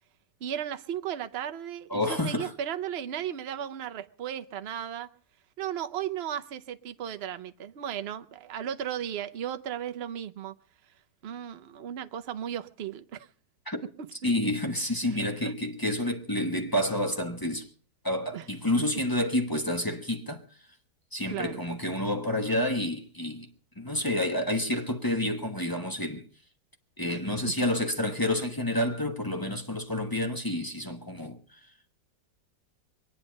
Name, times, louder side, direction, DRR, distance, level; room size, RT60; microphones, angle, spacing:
voice 1, 0.4-5.1 5.6-10.5 11.2-13.3 15.2-15.5 18.3-18.4 21.3-21.6 27.1-27.2 27.4-27.5, right 9 dB, 50° right, 0.8 m, -35 dB
voice 2, 1.9-2.5 13.7-13.8 14.2-17.7 18.0-20.7 21.1-23.5 23.7-26.3 27.0-31.9, left 1 dB, 15° left, 1.2 m, -29 dB
23.0 x 9.9 x 5.2 m
omnidirectional pair, 1.8 m